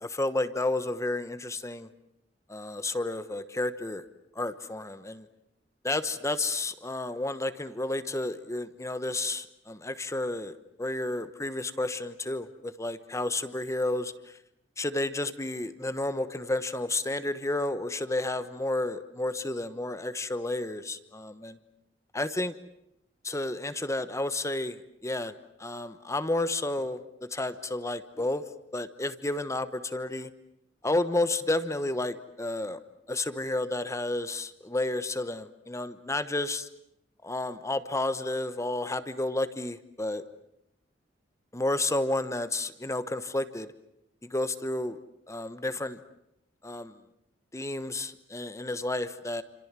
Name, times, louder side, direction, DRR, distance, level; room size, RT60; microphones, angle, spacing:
voice 1, 0.0-1.9 2.5-4.0 4.3-5.3 5.8-14.4 14.8-21.6 22.1-22.6 23.2-27.0 27.3-28.4 28.7-30.3 30.8-32.8 33.1-36.7 37.2-40.2 41.5-43.7 44.2-45.0 45.3-46.0 46.6-47.0 47.5-49.4, left 2 dB, 15° left, 12 dB, 1.1 m, -31 dB
28.5 x 27.0 x 7.5 m, 0.82 s
head